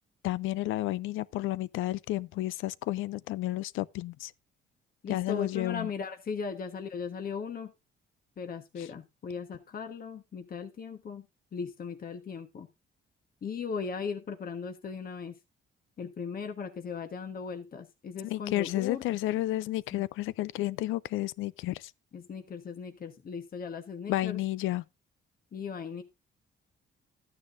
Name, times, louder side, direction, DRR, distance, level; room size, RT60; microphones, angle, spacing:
voice 1, 0.2-4.3 5.1-5.9 8.8-8.9 18.2-21.9 24.1-24.8, left 16 dB, 90° left, 0.5 m, -31 dB
voice 2, 5.0-7.7 8.4-11.2 11.5-12.7 13.4-15.3 16.0-19.0 19.9-20.0 22.1-24.4 25.5-26.0, left 6 dB, 45° left, 1.3 m, -38 dB
13.0 x 9.6 x 2.6 m
cardioid pair, 90°, 20 cm